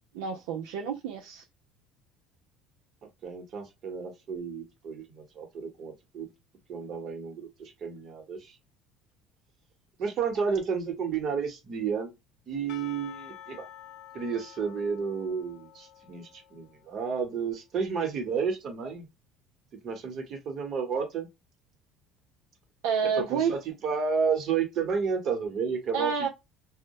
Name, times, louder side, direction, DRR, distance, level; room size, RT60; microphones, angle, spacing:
voice 1, 0.1-1.4 22.8-23.5 25.9-26.3, right 6 dB, 90° right, 0.4 m, -29 dB
voice 2, 3.2-6.3 6.7-8.6 10.0-12.1 12.5-13.7 14.1-19.1 19.8-21.3 23.0-26.3, right 6 dB, 50° right, 1.0 m, -31 dB
Percussion / Church bell, 12.7-17.1, left 12 dB, 70° left, 0.6 m, -49 dB
2.1 x 2.1 x 2.8 m
cardioid pair, 115°, 0 cm